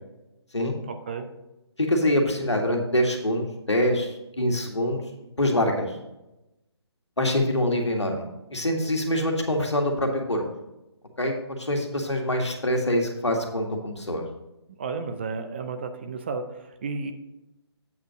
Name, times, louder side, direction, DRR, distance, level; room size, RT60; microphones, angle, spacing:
voice 1, 0.9-1.3 14.8-17.1, right 4 dB, 25° right, 7 dB, 0.5 m, -32 dB
voice 2, 1.8-5.0 5.4-6.0 7.2-10.4 11.2-14.2, left 1 dB, 80° left, 2 dB, 1.8 m, -25 dB
8.3 x 5.2 x 5.0 m, 0.94 s
figure-of-eight pair, 145°, 14 cm